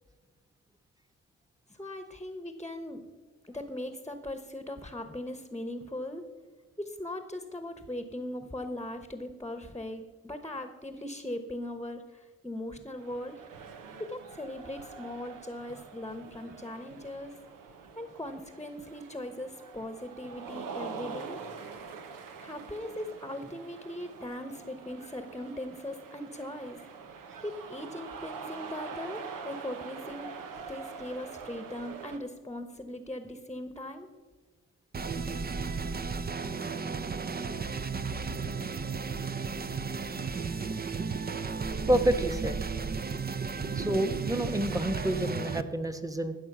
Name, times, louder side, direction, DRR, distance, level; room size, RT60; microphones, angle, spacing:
voice 1, 1.7-3.0 3.4-6.2 6.8-13.4 14.0-17.3 18.0-21.4 22.4-26.8 27.4-30.3 30.7-34.1, left 1 dB, 10° left, 8 dB, 1.1 m, -39 dB
sound 1, 13.0-32.2, right 5 dB, 85° right, 1.1 m, -44 dB
sound 2, 34.9-45.6, right 5 dB, 30° right, 0.7 m, -34 dB
voice 2, 41.6-42.6 43.7-46.4, right 1 dB, 10° right, 7 dB, 1.2 m, -29 dB
15.5 x 6.3 x 6.1 m, 1.4 s
cardioid pair, 55°, 32 cm